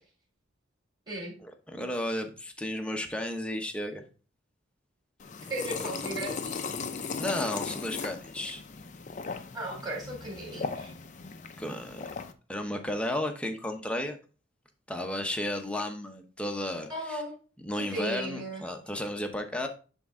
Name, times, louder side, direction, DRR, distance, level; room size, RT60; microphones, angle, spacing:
voice 1, 1.4-4.0 5.7-5.8 7.2-8.6 11.6-12.0 12.5-14.2 14.9-17.2 17.6-19.7, left 1 dB, 5° left, 4 dB, 0.8 m, -33 dB
sound 1, 5.2-12.3, left 5 dB, 40° left, 0.5 m, -37 dB
voice 2, 5.5-6.6 9.5-10.9 16.9-17.3 17.8-18.6, right 1 dB, 20° right, -3 dB, 3.6 m, -36 dB
10.5 x 3.5 x 3.6 m, 0.36 s
head